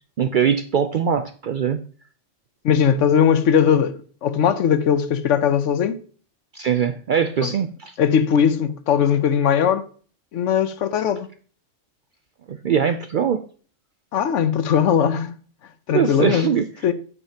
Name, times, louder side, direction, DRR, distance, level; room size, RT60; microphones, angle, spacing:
voice 1, 0.2-1.8 6.5-8.0 12.5-13.4 15.9-16.9, right 7 dB, 65° right, 0.5 m, -22 dB
voice 2, 2.6-3.9 4.2-6.0 7.4-7.5 8.0-9.9 10.3-11.3 14.1-15.3 15.9-16.5 16.8-16.9, left 8 dB, 75° left, 1.0 m, -19 dB
9.1 x 8.1 x 2.8 m
omnidirectional pair, 1.3 m